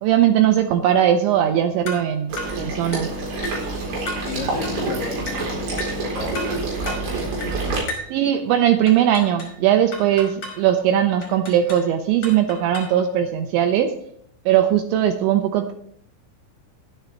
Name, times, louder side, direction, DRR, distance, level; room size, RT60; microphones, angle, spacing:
voice 1, 0.0-3.1 8.1-13.9 14.5-15.7, right 10 dB, 80° right, 6 dB, 2.7 m, -19 dB
sound 1, 1.9-2.1 2.4-2.6 2.9-3.1 3.4-3.7 4.1-4.3 4.6-4.8 5.3-5.5 5.8-6.0 6.3-6.6 6.9-7.1 7.4-7.6 7.9-8.1 8.9-9.6 9.9-10.6 11.2-11.9 12.2-13.0, left 1 dB, 35° left, 6.1 m, -34 dB
Water / Liquid, 2.3-7.8, right 2 dB, 60° right, 6.2 m, -27 dB
voice 2, 4.2-7.2, left 4 dB, 65° left, -1 dB, 2.3 m, -34 dB
12.5 x 10.0 x 4.6 m, 0.66 s
omnidirectional pair, 6.0 m